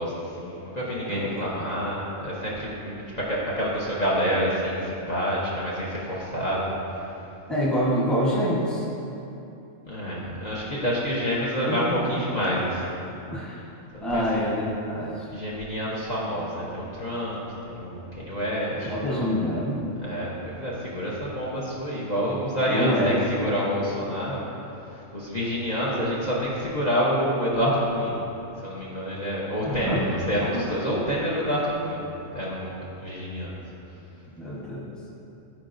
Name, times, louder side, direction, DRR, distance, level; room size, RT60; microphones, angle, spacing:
voice 1, 0.0-7.1 9.9-13.2 14.1-14.5 15.3-17.4 17.7-19.3 20.0-24.4 24.9-28.1 28.6-32.0 32.3-33.5, equal, 35° left, -6 dB, 0.9 m, -28 dB
voice 2, 7.5-8.9 11.6-11.8 13.3-13.6 14.0-15.3 18.8-19.9 22.7-23.5 29.7-30.0 34.4-34.9, equal, ahead, -6 dB, 1.0 m, -26 dB
13.0 x 4.5 x 2.6 m, 2.8 s
omnidirectional pair, 1.3 m